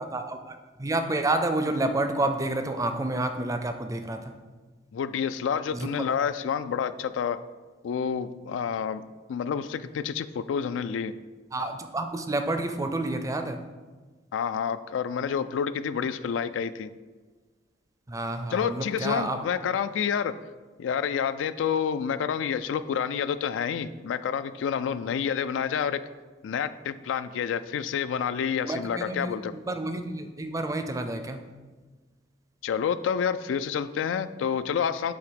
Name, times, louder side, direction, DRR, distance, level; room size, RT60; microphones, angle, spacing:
voice 1, 0.1-4.4 5.7-5.9 11.5-13.6 18.1-19.4 28.6-31.5, right 2 dB, 20° right, 7 dB, 0.4 m, -29 dB
voice 2, 4.9-7.4 7.8-9.0 9.3-11.1 14.3-16.9 18.5-20.3 20.8-26.0 26.4-29.5 32.6-35.1, left 7 dB, 90° left, 13 dB, 0.3 m, -28 dB
7.8 x 2.9 x 5.1 m, 1.3 s
head